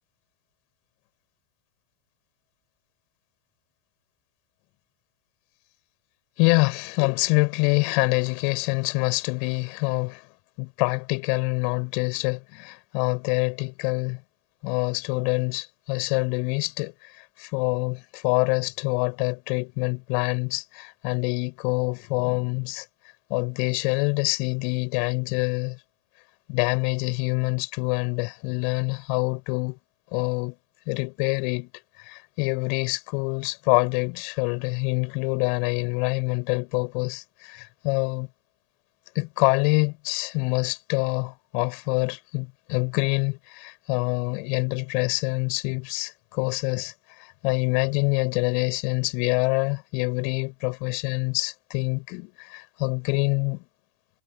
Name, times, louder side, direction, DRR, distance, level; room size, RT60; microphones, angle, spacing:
voice 1, 6.4-10.3 10.6-14.2 14.6-22.9 23.3-25.8 26.5-29.8 30.1-30.6 30.9-31.7 32.0-38.3 39.1-53.6, left 37 dB, 50° left, 5.7 m, -26 dB
hypercardioid pair, 90°, 0 cm